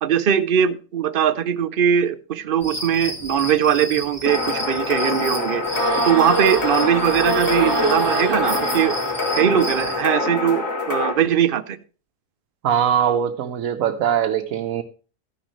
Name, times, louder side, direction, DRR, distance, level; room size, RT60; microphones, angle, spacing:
voice 1, 0.0-9.0 9.3-11.8, right 9 dB, 50° right, 11 dB, 0.8 m, -20 dB
sound 1, 2.6-10.0, equal, 10° left, 1.6 m, -33 dB
sound 2, 4.3-11.1, left 3 dB, 80° left, 2.3 m, -25 dB
sound 3, 5.7-9.5, right 2 dB, 20° right, 1.7 m, -25 dB
voice 2, 12.6-14.8, right 9 dB, 90° right, 4 dB, 1.1 m, -21 dB
13.5 x 10.0 x 3.1 m, 0.37 s
omnidirectional pair, 1.4 m